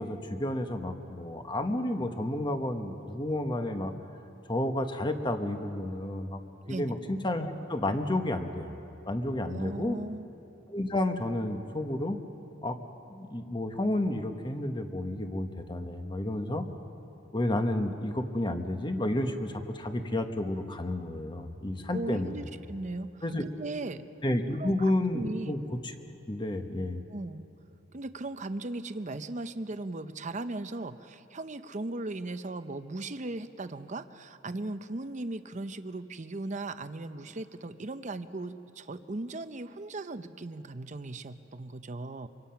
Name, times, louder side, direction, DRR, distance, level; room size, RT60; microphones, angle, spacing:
voice 1, 0.0-3.9 4.5-6.4 6.7-8.7 9.1-10.0 10.7-12.2 12.6-12.8 13.1-16.6 17.3-22.5 23.2-23.4 24.2-25.6 25.8-25.9 26.3-27.0, left 1 dB, 25° left, 6 dB, 1.2 m, -31 dB
voice 2, 9.5-10.3 21.9-24.0 24.6-25.6 27.1-27.5 27.9-42.3, right 2 dB, 40° right, 11 dB, 0.7 m, -37 dB
25.5 x 24.5 x 5.8 m, 2.9 s
head